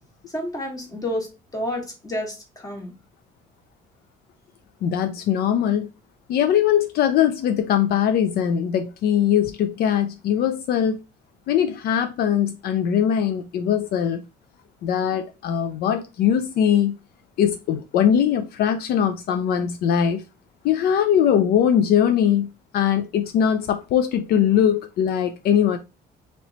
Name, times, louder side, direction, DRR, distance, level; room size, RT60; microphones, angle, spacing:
voice 1, 0.3-1.3 1.5-2.9, left 1 dB, 20° left, 1.4 m, -29 dB
voice 2, 4.8-5.9 6.3-11.0 11.5-14.2 14.8-16.9 17.4-20.2 20.6-22.5 22.7-25.8, left 9 dB, 65° left, 0.4 m, -21 dB
3.0 x 2.9 x 4.1 m
cardioid pair, 110°, 17 cm